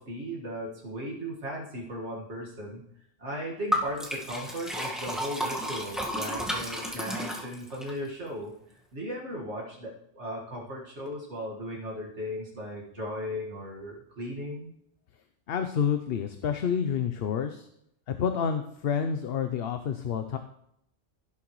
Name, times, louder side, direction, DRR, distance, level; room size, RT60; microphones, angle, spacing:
voice 1, 0.0-2.8 3.2-8.6 8.9-14.7, equal, 70° right, -3 dB, 2.2 m, -37 dB
Liquid, 3.7-7.9, equal, ahead, 1.5 m, -32 dB
voice 2, 15.5-17.7 18.1-20.4, left 7 dB, 60° left, 8 dB, 0.8 m, -29 dB
16.5 x 7.7 x 3.1 m, 0.75 s
omnidirectional pair, 1.2 m